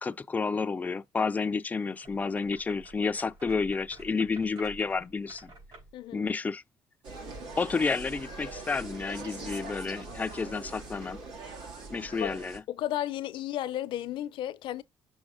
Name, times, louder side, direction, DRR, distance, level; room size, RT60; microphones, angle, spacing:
voice 1, 0.0-5.5 6.1-6.6 7.6-11.2 11.9-12.6, left 4 dB, 20° left, 0.3 m, -30 dB
sound 1, 1.9-6.0, right 2 dB, 70° right, 4.1 m, -51 dB
voice 2, 5.9-6.2 12.2-12.3 12.7-14.8, left 12 dB, 75° left, 0.6 m, -33 dB
Insect, 7.0-12.6, right 3 dB, 90° right, 1.9 m, -42 dB
6.3 x 3.0 x 5.0 m
cardioid pair, 105°, 8 cm